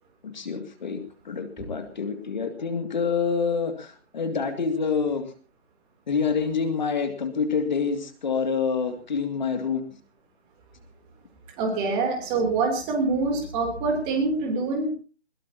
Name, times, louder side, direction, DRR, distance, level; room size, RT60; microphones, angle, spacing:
voice 1, 0.2-5.3 6.1-9.8, left 5 dB, 40° left, 7 dB, 2.2 m, -27 dB
voice 2, 11.6-14.9, right 3 dB, 15° right, 3 dB, 3.0 m, -25 dB
21.5 x 20.5 x 2.8 m, 0.35 s
figure-of-eight pair, 155°, 35 cm